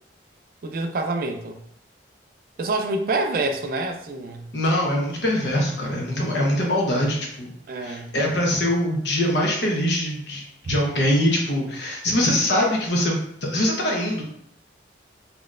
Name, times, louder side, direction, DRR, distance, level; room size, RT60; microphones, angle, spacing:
voice 1, 0.6-1.6 2.6-4.5 7.7-8.1 10.6-10.8, right 2 dB, 50° right, 4 dB, 0.4 m, -27 dB
voice 2, 4.5-7.5 7.8-10.4 10.7-14.2, left 1 dB, 70° left, -1 dB, 0.9 m, -23 dB
4.1 x 2.9 x 2.4 m, 0.72 s
head